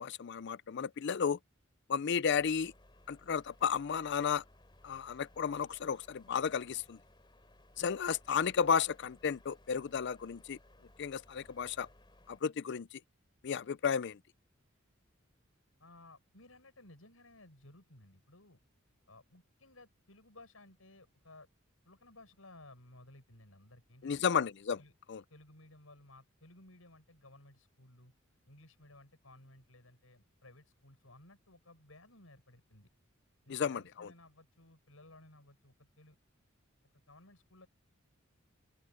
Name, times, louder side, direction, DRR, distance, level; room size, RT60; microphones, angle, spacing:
voice 1, 0.0-1.4 1.9-2.7 3.1-4.4 4.8-7.0 7.8-10.6 11.0-11.9 12.3-13.0 13.4-14.2 24.0-24.8 25.1-25.2 33.5-34.1, left 7 dB, 55° left, 0.5 m, -33 dB
sound 1, 2.4-12.4, left 1 dB, 25° left, 3.2 m, -62 dB
voice 2, 15.8-18.6 19.1-21.5 21.8-24.3 24.8-24.9 25.3-28.1 28.5-32.9 33.4-36.2 36.9-37.7, left 2 dB, 80° left, 7.7 m, -58 dB
open air
head